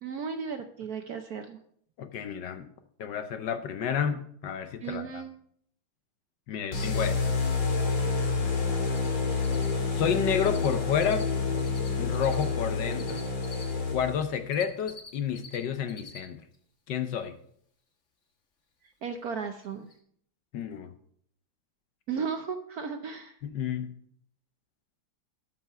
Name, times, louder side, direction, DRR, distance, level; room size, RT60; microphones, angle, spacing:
voice 1, 0.0-1.6 4.8-5.3 19.0-19.9 22.1-23.4, right 6 dB, 65° right, 6 dB, 0.9 m, -35 dB
voice 2, 2.0-2.7 3.0-5.2 6.5-7.4 9.9-11.3 12.0-13.2 13.9-16.4 16.9-17.4 20.5-20.9 23.4-23.9, left 7 dB, 65° left, 9 dB, 1.3 m, -30 dB
sound 1, 6.7-14.4, left 4 dB, 85° left, 3.0 m, -28 dB
Cricket, 8.9-9.1 9.3-10.7 10.9-13.6 14.2-15.6 15.8-16.2 16.5-16.6 19.1-19.2 19.6-19.7 19.9-20.0, left 4 dB, 40° left, 1.6 m, -47 dB
12.5 x 5.8 x 5.5 m, 0.65 s
omnidirectional pair, 2.3 m